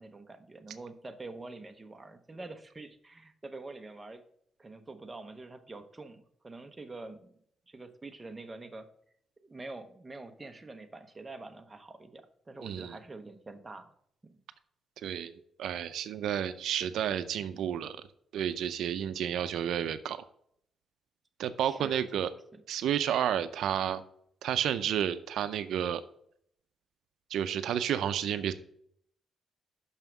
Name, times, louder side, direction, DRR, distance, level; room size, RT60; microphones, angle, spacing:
voice 1, 0.0-4.2 4.6-7.3 7.7-8.9 9.4-13.9 14.2-14.3 21.6-22.6, right 2 dB, 20° right, 7 dB, 0.8 m, -46 dB
voice 2, 12.6-12.9 15.0-15.3 15.6-18.0 18.3-20.2 21.4-22.3 22.7-24.0 24.4-26.0 27.3-28.5, right 9 dB, 85° right, 12 dB, 0.4 m, -31 dB
6.2 x 5.6 x 5.9 m, 0.67 s
cardioid pair, 120°, 0 cm